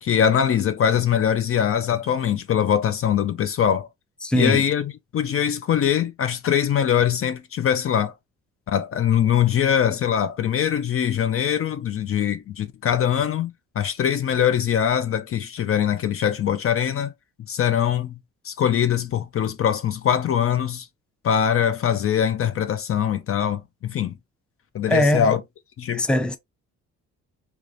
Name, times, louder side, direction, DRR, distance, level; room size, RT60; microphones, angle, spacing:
voice 1, 0.0-3.9 4.3-8.1 8.7-17.1 17.5-18.2 18.4-20.9 21.2-24.2 24.7-25.4 25.8-26.1, left 9 dB, 50° left, 0.5 m, -22 dB
voice 2, 4.2-4.7 24.9-25.3 25.9-26.4, left 1 dB, 5° left, 0.5 m, -21 dB
3.3 x 3.0 x 2.4 m
cardioid pair, 90°, 30 cm